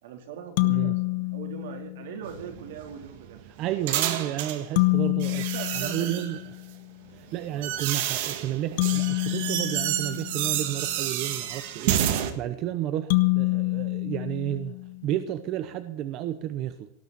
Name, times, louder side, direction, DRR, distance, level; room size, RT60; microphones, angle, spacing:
voice 1, 0.0-3.4 5.4-6.2, right 8 dB, 80° right, 4 dB, 3.7 m, -40 dB
sound 1, 0.6-2.2 4.8-6.8 8.8-10.9 13.1-15.2, left 25 dB, 60° left, 1.0 m, -27 dB
sound 2, 2.2-4.6 5.2-6.4 7.1-12.3, right 11 dB, 55° right, 1.8 m, -30 dB
voice 2, 3.6-5.4 5.7-6.4 7.1-12.0 12.3-14.8 15.0-16.9, right 12 dB, 35° right, 10 dB, 0.8 m, -31 dB
18.0 x 6.8 x 9.7 m, 0.71 s
supercardioid pair, 175°, 0 cm